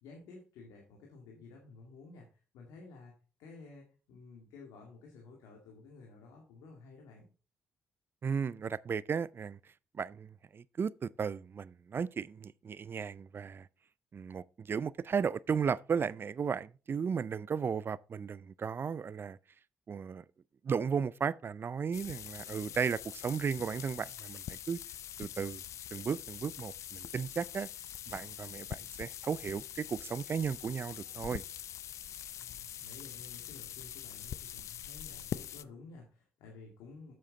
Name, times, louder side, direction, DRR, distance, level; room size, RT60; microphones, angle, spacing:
voice 1, 0.0-3.1 3.4-7.3 32.3-37.1, left 3 dB, 85° left, 2.1 m, -53 dB
voice 2, 8.2-9.6 9.9-13.7 14.1-19.4 19.9-20.2 20.6-24.8 25.2-25.6 25.9-27.7 28.1-31.4, right 6 dB, 45° right, 0.4 m, -35 dB
sound 1, 21.9-35.6, left 11 dB, 70° left, 0.4 m, -44 dB
7.8 x 7.4 x 4.0 m
supercardioid pair, 60°, 5 cm